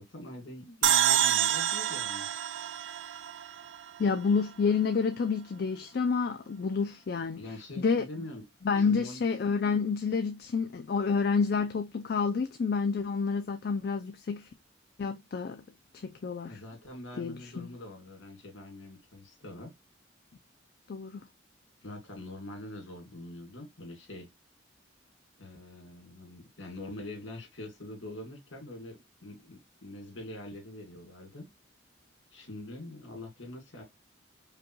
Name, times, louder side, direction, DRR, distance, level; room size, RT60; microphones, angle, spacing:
voice 1, 0.0-2.3 7.4-8.4 8.8-9.2 16.4-19.7 21.8-24.3 25.4-31.5 32.3-33.8, left 1 dB, 90° left, 2.2 m, -44 dB
sound 1, 0.8-4.1, right 10 dB, 80° right, 0.4 m, -28 dB
voice 2, 4.0-7.4 7.8-8.0 8.6-14.5 15.0-15.6 16.0-16.6 17.2-17.7 20.9-21.2, left 5 dB, 55° left, 0.4 m, -29 dB
5.1 x 2.3 x 2.9 m
head